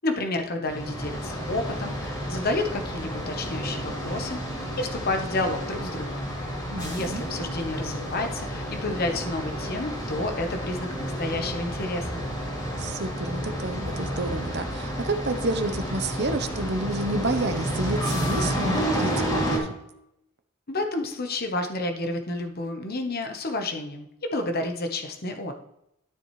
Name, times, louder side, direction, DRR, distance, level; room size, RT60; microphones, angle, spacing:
voice 1, 0.0-4.4 4.8-6.3 6.8-12.2 20.7-25.5, left 2 dB, 50° left, 5 dB, 1.1 m, -30 dB
sound 1, 0.7-19.6, equal, 20° left, 2.7 m, -30 dB
voice 2, 6.7-7.2 12.8-19.8, right 2 dB, 55° right, 8 dB, 0.9 m, -30 dB
12.5 x 7.0 x 3.2 m, 0.81 s
head